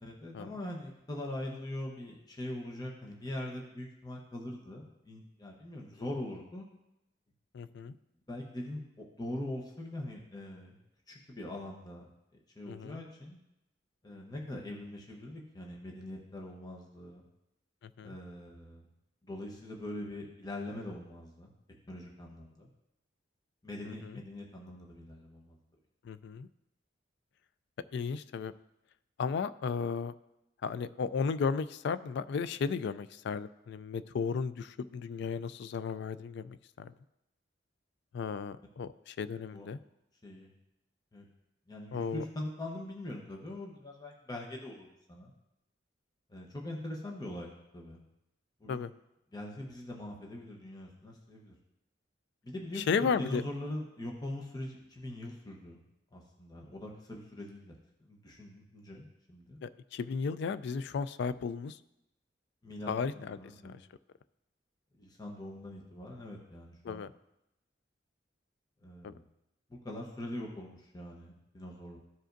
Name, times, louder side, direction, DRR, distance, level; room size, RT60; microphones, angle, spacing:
voice 1, 0.0-6.7 7.8-7.9 8.3-10.8 11.1-12.1 12.5-13.4 14.0-17.2 18.0-18.9 19.2-21.5 21.9-22.7 23.6-25.6 39.5-39.7 40.2-40.5 41.1-41.3 41.7-45.3 46.3-48.0 48.6-48.8 49.3-51.5 52.4-55.8 56.1-57.7 58.0-59.6 62.6-62.9 63.3-63.7 65.0-67.1 68.8-69.2 69.7-72.0, left 1 dB, 20° left, -1 dB, 0.9 m, -42 dB
voice 2, 7.5-8.0 12.7-13.0 18.0-18.1 23.9-24.2 26.0-26.5 27.9-28.5 29.2-30.1 30.6-36.9 38.1-39.8 41.9-42.2 48.7-48.9 52.8-53.4 59.6-61.8 62.9-63.4 63.6-63.8 66.8-67.1 69.0-69.1, left 5 dB, 60° left, 15 dB, 0.3 m, -34 dB
14.0 x 5.0 x 2.6 m, 0.87 s
head